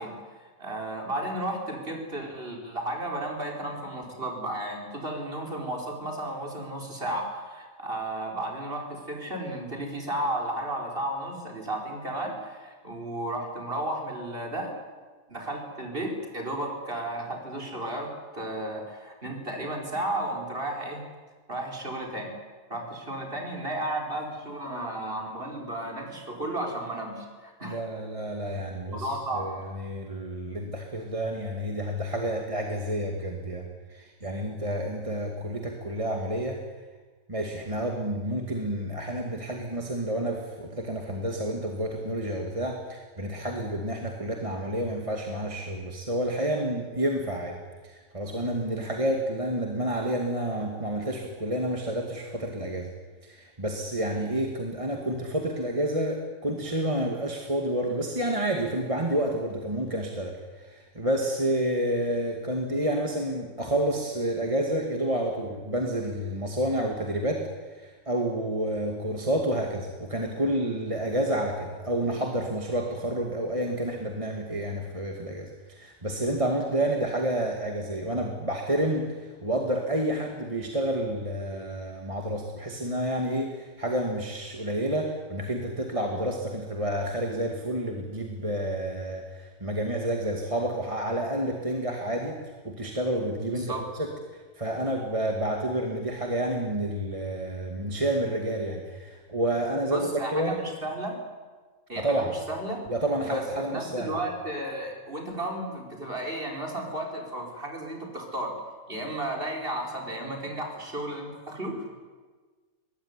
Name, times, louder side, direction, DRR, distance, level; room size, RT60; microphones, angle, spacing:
voice 1, 0.0-14.7 15.3-21.0 21.5-22.3 22.7-27.8 28.5-28.6 28.9-29.5 93.5-93.8 99.9-101.2 101.9-102.9 103.2-108.5 108.9-111.9, right 1 dB, 40° right, 1 dB, 5.1 m, -33 dB
voice 2, 27.6-36.6 37.3-52.9 53.2-67.5 67.8-94.1 94.6-100.6 102.0-102.3 102.9-104.2, right 1 dB, 25° right, 1 dB, 2.3 m, -29 dB
23.0 x 19.5 x 9.9 m, 1.4 s
omnidirectional pair, 1.5 m